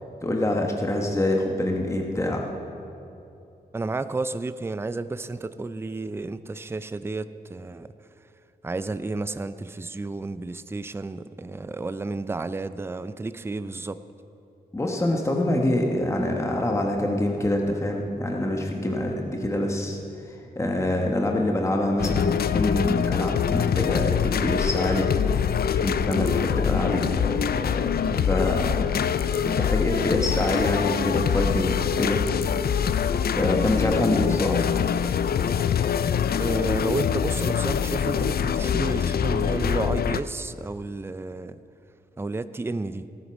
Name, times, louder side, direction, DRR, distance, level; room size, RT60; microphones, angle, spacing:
voice 1, 0.2-2.5 14.7-20.0 20.3-25.1 25.7-28.8 29.4-32.2 33.3-34.9, left 1 dB, 15° left, 1 dB, 1.2 m, -25 dB
voice 2, 3.7-7.9 8.6-14.0 36.4-41.6 42.2-43.1, right 3 dB, 15° right, 13 dB, 0.4 m, -31 dB
sound 1, 22.0-40.2, left 8 dB, 65° left, 0.4 m, -24 dB
16.0 x 9.3 x 6.2 m, 2.7 s
wide cardioid pair, 115°, 17 cm